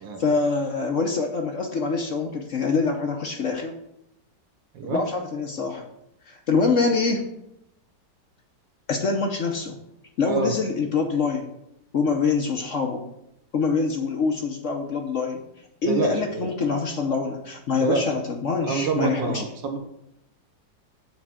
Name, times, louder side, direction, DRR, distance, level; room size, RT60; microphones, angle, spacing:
voice 1, 0.2-3.7 4.8-5.8 6.3-7.3 8.9-9.8 10.2-11.5 11.9-13.1 13.5-15.4 15.8-19.5, left 4 dB, 55° left, 3 dB, 0.9 m, -25 dB
voice 2, 15.9-16.5 17.8-18.0 18.6-19.8, right 4 dB, 85° right, 4 dB, 1.8 m, -26 dB
7.4 x 4.5 x 6.0 m, 0.82 s
omnidirectional pair, 2.0 m